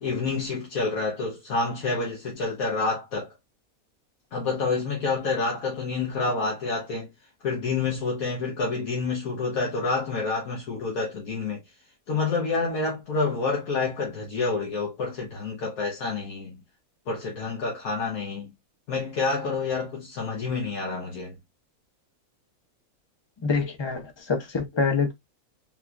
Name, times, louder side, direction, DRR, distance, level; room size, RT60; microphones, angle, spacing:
voice 1, 0.0-3.3 4.3-7.1 7.4-11.6 12.1-16.6 17.1-18.5 18.9-21.3, left 4 dB, 70° left, 1.4 m, -28 dB
voice 2, 23.4-25.1, left 4 dB, 30° left, 0.5 m, -26 dB
3.7 x 2.9 x 2.4 m
omnidirectional pair, 1.6 m